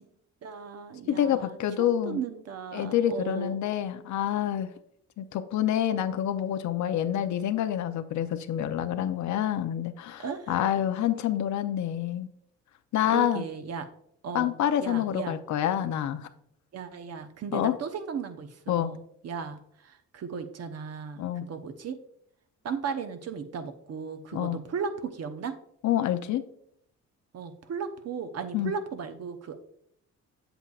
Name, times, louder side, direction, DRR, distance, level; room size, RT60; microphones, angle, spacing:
voice 1, 0.4-1.6 2.0-3.6 10.2-10.6 13.0-13.9 14.2-14.5 14.8-15.3 16.7-22.0 22.6-25.5 27.3-29.6, right 6 dB, 55° right, 8 dB, 0.9 m, -36 dB
voice 2, 1.1-2.2 2.7-4.7 5.2-12.3 12.9-13.4 14.3-16.3 17.5-17.7 18.7-18.9 21.2-21.5 24.3-24.6 25.8-26.4 28.5-28.7, left 11 dB, 70° left, 9 dB, 0.7 m, -27 dB
8.0 x 7.9 x 2.4 m, 0.71 s
cardioid pair, 90°, 30 cm